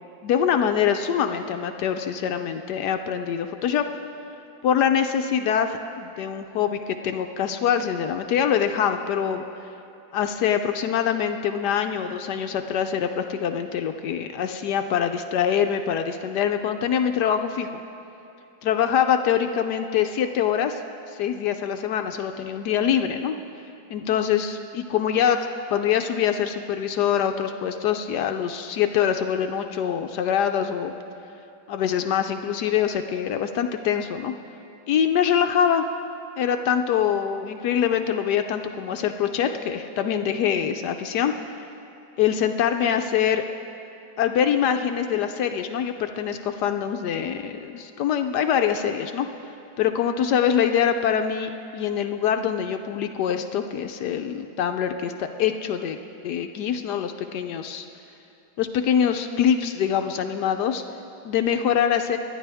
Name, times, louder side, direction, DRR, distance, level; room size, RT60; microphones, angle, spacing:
voice 1, 0.2-3.9 4.6-9.4 10.1-17.7 18.6-20.8 21.2-23.3 23.9-25.4 25.7-30.9 31.7-34.3 34.9-35.9 36.4-41.7 42.2-43.4 44.2-49.3 49.8-56.0 56.2-57.9 58.6-60.8 61.2-62.2, left 8 dB, 70° left, 7 dB, 1.1 m, -24 dB
24.0 x 10.5 x 3.5 m, 2.8 s
omnidirectional pair, 2.0 m